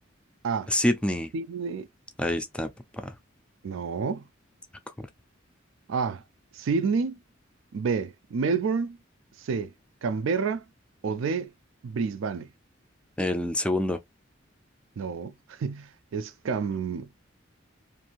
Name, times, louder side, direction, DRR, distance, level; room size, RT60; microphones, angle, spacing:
voice 1, 0.7-1.3 2.2-3.1 4.9-5.0 13.2-14.0, left 1 dB, 5° left, 0.4 m, -27 dB
voice 2, 1.3-1.9 3.6-4.3 5.9-6.2 6.5-7.2 7.7-9.0 9.4-9.7 10.0-10.6 11.0-11.5 11.8-12.5 15.0-17.2, right 5 dB, 70° right, 0.4 m, -29 dB
2.6 x 2.5 x 2.9 m
head